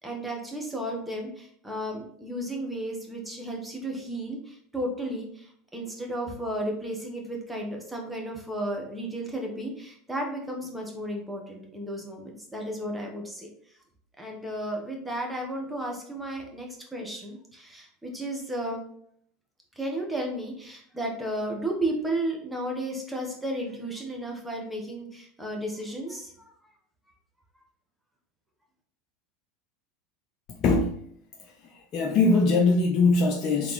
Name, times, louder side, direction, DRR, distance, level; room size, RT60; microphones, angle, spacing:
voice 1, 0.0-13.5 14.2-18.9 19.7-26.3, right 1 dB, 5° right, 0 dB, 1.3 m, -33 dB
voice 2, 30.5-31.0 31.4-33.7, left 3 dB, 45° left, 1 dB, 0.6 m, -22 dB
3.8 x 3.4 x 3.1 m, 0.66 s
hypercardioid pair, 80°, 0 cm